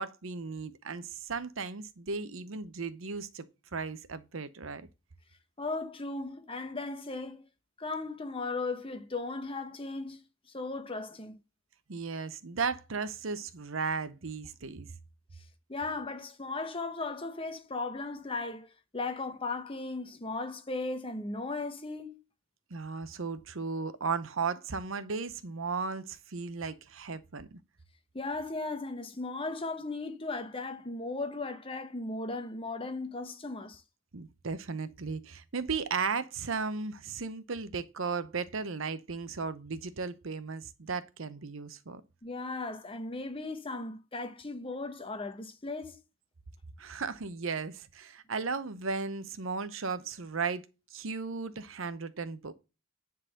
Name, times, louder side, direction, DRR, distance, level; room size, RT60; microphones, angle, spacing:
voice 1, 0.0-3.5 3.7-4.9 11.9-14.9 22.7-27.6 34.1-42.0 46.8-50.6 50.9-52.5, right 4 dB, 65° right, 0.8 m, -35 dB
voice 2, 5.6-7.4 7.8-10.2 10.5-11.3 15.7-22.2 28.1-33.8 42.2-46.0, left 3 dB, 25° left, 0.9 m, -36 dB
10.0 x 4.0 x 6.5 m
head